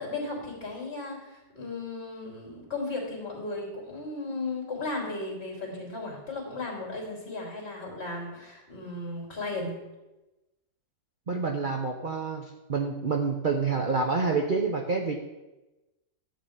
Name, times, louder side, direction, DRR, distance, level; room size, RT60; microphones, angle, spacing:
voice 1, 0.0-9.7, left 2 dB, 35° left, -2 dB, 3.1 m, -35 dB
voice 2, 11.3-15.2, right 4 dB, 50° right, 2 dB, 0.6 m, -28 dB
12.0 x 4.1 x 8.0 m, 1.0 s
omnidirectional pair, 2.0 m